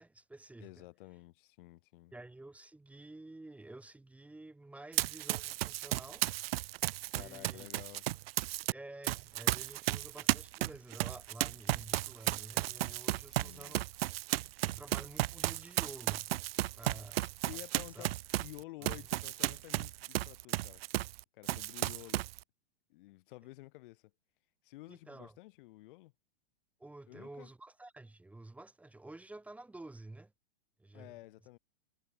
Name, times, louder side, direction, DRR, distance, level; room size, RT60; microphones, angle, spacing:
voice 1, 0.0-0.9 2.1-6.2 7.1-7.7 8.7-13.9 14.6-16.3 16.7-18.1 18.8-19.0 24.9-25.4 26.8-30.3 30.8-31.2, right 2 dB, 5° right, 1.2 m, -51 dB
voice 2, 0.6-2.1 7.1-8.1 13.3-13.8 17.5-20.8 21.3-22.2 22.9-24.1 24.6-26.1 27.1-27.5 30.9-31.6, left 19 dB, 55° left, 1.1 m, -51 dB
Run, 4.9-8.7 9.0-21.2 21.5-22.4, right 16 dB, 65° right, 0.5 m, -34 dB
hypercardioid pair, 140°, 32 cm